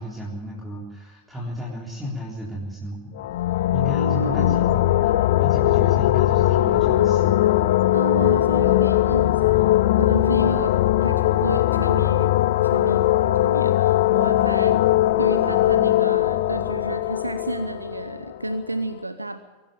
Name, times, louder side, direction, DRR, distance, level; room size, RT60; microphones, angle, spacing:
voice 1, 0.0-3.2 3.7-5.1 5.4-7.5, left 1 dB, 5° right, -4 dB, 3.9 m, -33 dB
sound 1, 3.2-18.7, left 14 dB, 55° left, 0.7 m, -20 dB
voice 2, 4.0-4.6 7.9-10.7 11.0-12.4 12.6-13.1 13.4-14.8 15.2-19.4, right 2 dB, 85° right, 10 dB, 0.9 m, -30 dB
23.0 x 12.5 x 9.1 m, 1.3 s
figure-of-eight pair, 90°, 0 cm